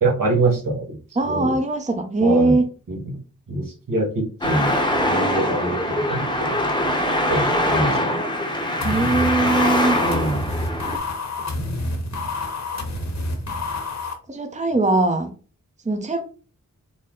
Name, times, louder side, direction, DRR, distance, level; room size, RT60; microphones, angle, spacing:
voice 1, 0.0-1.0 1.3-1.5 2.2-2.6 2.9-3.2 3.5-3.6 3.9-4.7 5.1-6.6 7.3-8.1 10.0-10.4, right 2 dB, 80° right, 1 dB, 1.3 m, -24 dB
voice 2, 1.2-2.7 8.8-10.0 14.3-15.3 15.9-16.2, right 2 dB, 20° right, 5 dB, 0.7 m, -21 dB
Traffic noise roadway noise, 4.4-11.0, left 1 dB, 15° left, 0.9 m, -22 dB
sound 1, 8.8-14.1, left 2 dB, 55° left, 1.1 m, -28 dB
4.2 x 2.1 x 3.7 m, 0.37 s
cardioid pair, 55°, 33 cm